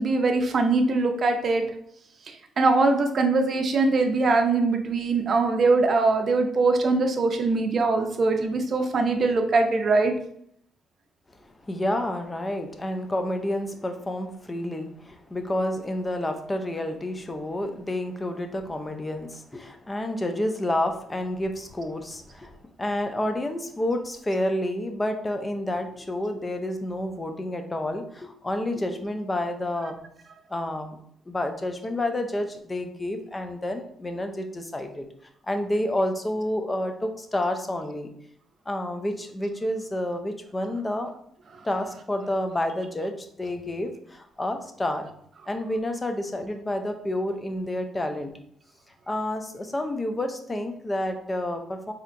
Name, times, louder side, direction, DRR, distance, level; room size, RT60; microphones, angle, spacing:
voice 1, 0.0-1.6 2.6-10.1 29.8-29.9, right 3 dB, 50° right, 5 dB, 0.6 m, -22 dB
voice 2, 11.6-22.5 22.8-30.0 30.5-31.0 31.3-35.0 35.5-38.1 38.7-41.1 41.6-43.1 43.4-45.1 45.5-48.3 49.1-51.9, left 1 dB, 20° left, 6 dB, 0.5 m, -29 dB
4.2 x 2.8 x 2.5 m, 0.69 s
cardioid pair, 90°, 0 cm